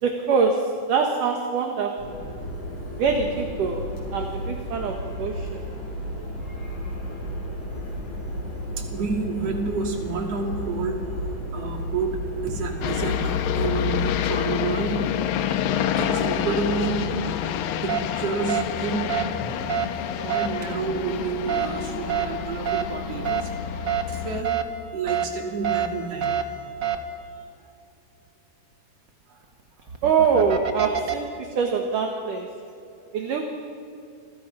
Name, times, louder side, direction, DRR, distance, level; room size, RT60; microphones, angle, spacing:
voice 1, 0.0-2.2 3.0-5.6 30.0-32.5 33.1-33.4, right 5 dB, 60° right, 3 dB, 2.9 m, -24 dB
sound 1, 2.0-14.0, left 1 dB, 50° left, 8.4 m, -33 dB
voice 2, 8.8-15.1 16.0-17.1 17.8-19.1 19.4-19.8 20.2-23.5 24.1-24.5 24.9-26.4 29.3-29.4, right 4 dB, 40° right, 2 dB, 3.5 m, -29 dB
sound 2, 12.8-24.4, left 9 dB, 70° left, 2.4 m, -28 dB
sound 3, 17.9-18.0 18.5-18.6 19.1-19.2 19.7-19.8 20.3-20.5 21.5-21.7 22.1-22.2 22.7-22.8 23.2-23.4 23.9-24.0 24.4-24.6 25.1-25.2 25.6-25.9 26.2-26.4 26.8-27.0 29.8-31.1, right 9 dB, 85° right, 1.0 m, -25 dB
29.5 x 25.5 x 5.8 m, 2.6 s
omnidirectional pair, 4.7 m